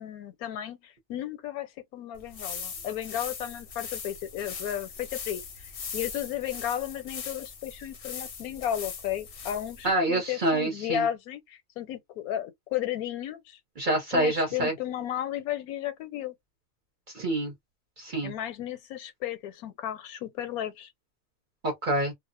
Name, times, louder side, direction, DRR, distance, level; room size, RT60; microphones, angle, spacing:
voice 1, 0.0-13.6 14.1-16.3 18.2-20.9, left 11 dB, 80° left, 1.1 m, -34 dB
sound 1, 2.2-9.9, left 6 dB, 55° left, 0.7 m, -40 dB
voice 2, 9.8-11.1 13.8-14.7 17.1-17.5 18.0-18.3 21.6-22.1, right 1 dB, 45° right, 0.7 m, -26 dB
2.4 x 2.0 x 2.5 m
omnidirectional pair, 1.5 m